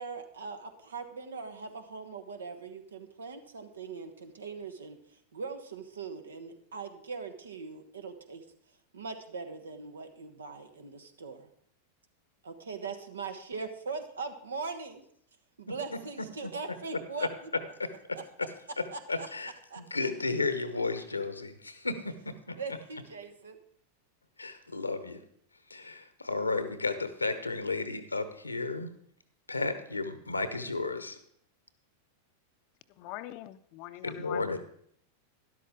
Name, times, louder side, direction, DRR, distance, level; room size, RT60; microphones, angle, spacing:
voice 1, 0.0-5.0 5.3-8.4 8.9-11.5 12.4-15.0 15.6-17.3 18.9-19.3 19.7-19.8 22.6-23.6, right 4 dB, 70° right, 8 dB, 1.2 m, -40 dB
voice 2, 17.8-18.5 18.8-22.6 24.4-25.2 25.7-28.9 29.5-31.2 34.0-34.6, left 3 dB, 80° left, 12 dB, 1.0 m, -33 dB
voice 3, 32.9-34.6, left 16 dB, 45° left, 13 dB, 0.6 m, -43 dB
12.5 x 11.5 x 3.6 m, 0.67 s
figure-of-eight pair, 90°, 0 cm